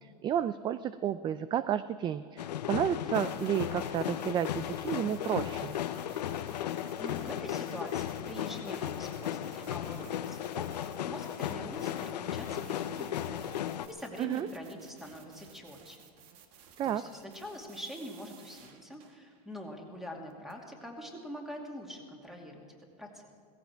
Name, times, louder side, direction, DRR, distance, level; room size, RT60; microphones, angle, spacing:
voice 1, 0.0-5.7 14.2-14.5 16.8-17.0, right 10 dB, 20° right, 14 dB, 0.3 m, -31 dB
sound 1, 2.4-13.9, left 11 dB, 85° left, 0.8 m, -35 dB
sound 2, 3.1-19.5 20.3-20.5, right 7 dB, 50° right, 1.6 m, -57 dB
voice 2, 6.7-13.5 13.9-16.1 16.8-23.3, equal, ahead, 1 dB, 2.4 m, -44 dB
17.0 x 15.5 x 4.6 m, 2.3 s
supercardioid pair, 125°, 21 cm